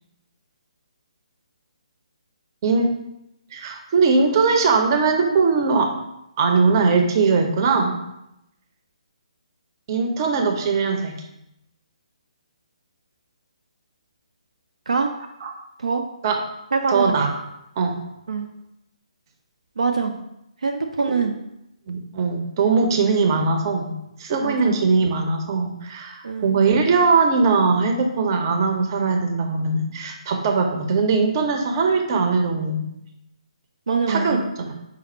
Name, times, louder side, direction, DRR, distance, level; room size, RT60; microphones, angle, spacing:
voice 1, 2.6-2.9 3.5-5.9 6.4-8.0 9.9-11.2 15.4-15.5 16.2-16.4 16.9-17.3 17.8-18.0 21.9-32.8 34.1-34.7, right 4 dB, 35° right, 4 dB, 0.7 m, -20 dB
voice 2, 16.7-17.0 18.3-18.5 19.8-20.1 20.6-21.4 24.4-24.9 26.2-26.6 33.9-34.4, right 4 dB, 75° right, 4 dB, 0.4 m, -23 dB
5.0 x 2.1 x 4.3 m, 0.83 s
figure-of-eight pair, 140°, 4 cm